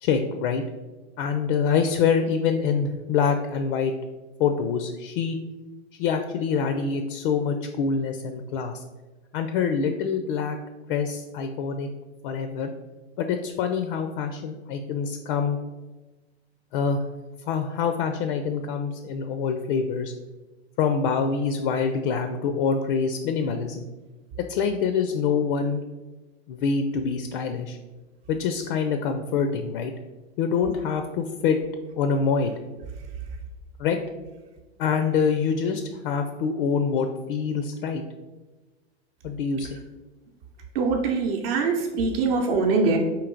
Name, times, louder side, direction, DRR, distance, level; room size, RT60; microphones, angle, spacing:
voice 1, 0.0-0.6 1.2-3.9 4.4-5.4 6.0-8.8 9.3-10.6 10.9-11.9 12.2-12.7 13.2-15.6 16.7-17.0 17.5-20.1 20.8-23.9 24.5-25.8 26.5-27.8 28.3-29.9 30.4-31.6 32.0-32.5 33.8-34.0 34.8-38.0 39.2-39.8, left 6 dB, 55° left, 7 dB, 0.4 m, -25 dB
voice 2, 40.7-43.0, right 4 dB, 60° right, 1 dB, 0.7 m, -23 dB
4.5 x 2.8 x 3.8 m, 1.2 s
hypercardioid pair, 115°, 32 cm